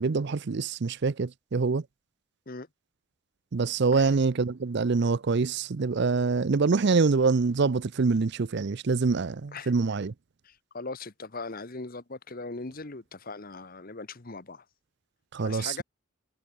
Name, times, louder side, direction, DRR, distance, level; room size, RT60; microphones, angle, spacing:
voice 1, 0.0-1.8 3.5-10.1 15.3-15.8, right 4 dB, 50° right, 0.5 m, -25 dB
voice 2, 10.4-14.6 15.4-15.8, left 3 dB, 40° left, 1.2 m, -39 dB
head